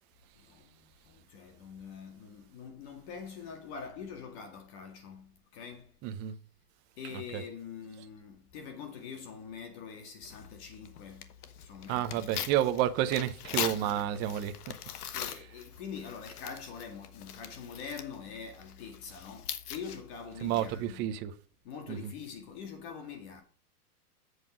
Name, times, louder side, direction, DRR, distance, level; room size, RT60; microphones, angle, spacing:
voice 1, 0.4-5.9 7.0-11.3 11.6-12.3 13.8-14.0 15.1-21.2 21.6-23.4, left 6 dB, 45° left, 2.1 m, -44 dB
voice 2, 6.0-6.3 7.3-7.4 11.9-14.5 20.4-21.3 21.9-22.0, right 12 dB, 25° right, 0.6 m, -30 dB
Tearing, 10.2-20.9, left 9 dB, 75° left, 1.3 m, -42 dB
8.0 x 5.2 x 6.2 m
hypercardioid pair, 145°, 46 cm